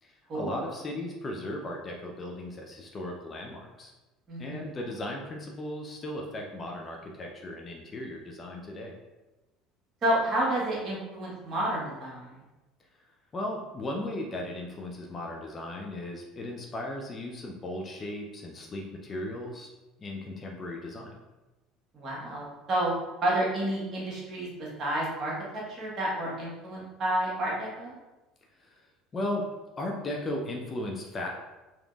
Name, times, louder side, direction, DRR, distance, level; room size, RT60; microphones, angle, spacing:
voice 1, 0.0-3.9 4.4-9.0 13.3-19.7 20.0-21.1 28.6-28.8 29.1-29.5 29.8-31.3, left 1 dB, 30° left, 0 dB, 0.6 m, -36 dB
voice 2, 4.3-4.7 10.0-12.4 21.9-22.9 23.2-27.9, right 1 dB, 40° right, -4 dB, 1.4 m, -30 dB
5.1 x 3.0 x 2.4 m, 1.1 s
figure-of-eight pair, 65°, 0 cm